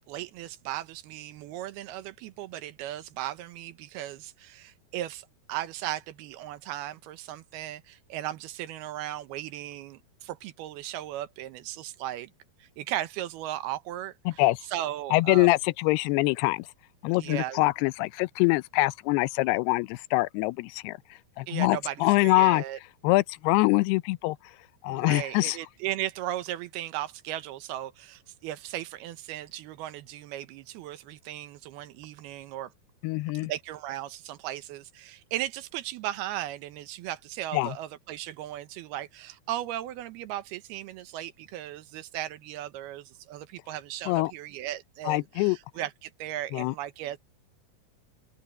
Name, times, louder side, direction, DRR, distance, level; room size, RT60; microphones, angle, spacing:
voice 1, 0.1-12.3 12.6-14.4 14.7-15.5 17.1-17.6 21.5-22.8 24.9-32.7 33.4-47.2, right 13 dB, 80° right, 2.9 m, -36 dB
voice 2, 14.3-14.6 15.1-16.7 17.0-21.0 21.4-22.6 23.0-24.4 24.8-25.6 33.0-33.5 37.5-37.8 44.1-44.3 45.0-45.6 46.5-46.7, left 21 dB, 90° left, 2.6 m, -24 dB
open air
omnidirectional pair, 4.5 m